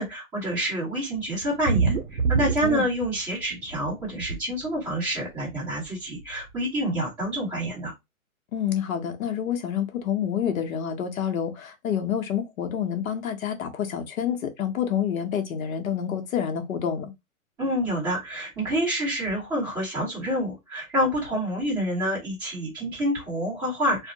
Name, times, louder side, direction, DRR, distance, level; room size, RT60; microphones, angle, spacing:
voice 1, 0.0-7.9 17.6-24.1, equal, 10° right, 1.1 m, -28 dB
sound 1, 1.4-3.4 3.7-4.4 5.4-5.5 5.8-5.9 6.2-6.3, right 5 dB, 60° right, 0.7 m, -25 dB
voice 2, 8.5-17.1, left 8 dB, 75° left, 0.7 m, -28 dB
2.6 x 2.1 x 2.6 m
hypercardioid pair, 170°, 42 cm